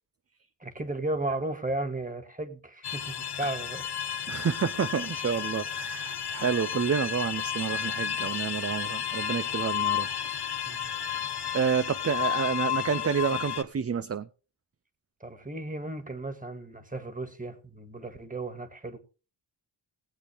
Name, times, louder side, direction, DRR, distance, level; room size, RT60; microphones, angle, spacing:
voice 1, 0.6-3.8 10.6-10.9 15.2-19.0, right 2 dB, 20° right, 2.0 m, -35 dB
High string intense suspense, 2.8-13.6, left 9 dB, 60° left, 1.0 m, -32 dB
voice 2, 4.3-10.1 11.5-14.3, right 7 dB, 35° right, 0.5 m, -29 dB
19.5 x 8.3 x 3.5 m
cardioid pair, 85°, 45 cm